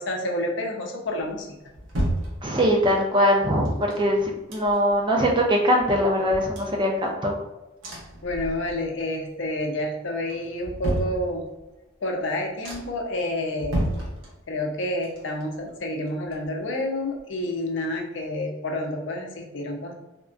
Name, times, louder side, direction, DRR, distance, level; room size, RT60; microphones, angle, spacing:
voice 1, 0.0-1.5 8.2-11.4 12.0-13.8 14.5-19.9, left 1 dB, 65° left, 1 dB, 0.6 m, -29 dB
sound 1, 1.2-2.9 3.6-5.1 5.4-5.5 5.8-7.4 7.8-9.0 9.3-9.8 10.3-11.7 12.2-12.3 12.6-13.1 13.5-14.7 15.0-16.8 17.2-17.3, right 1 dB, 80° right, 0.9 m, -33 dB
voice 2, 2.4-7.3, equal, 25° right, 0 dB, 0.4 m, -22 dB
3.5 x 2.1 x 2.5 m, 1.0 s
head